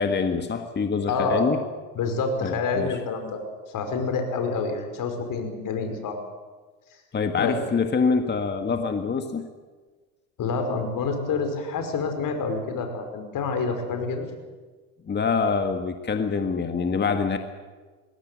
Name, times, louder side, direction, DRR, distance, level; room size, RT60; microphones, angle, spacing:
voice 1, 0.0-1.6 2.4-3.0 7.1-9.5 15.1-17.4, left 5 dB, 25° left, 7 dB, 1.7 m, -25 dB
voice 2, 1.1-1.5 2.0-3.4 3.7-6.2 7.4-7.6 10.4-14.3, left 4 dB, 50° left, 6 dB, 5.3 m, -27 dB
21.0 x 17.0 x 9.3 m, 1.4 s
hypercardioid pair, 85°, 42 cm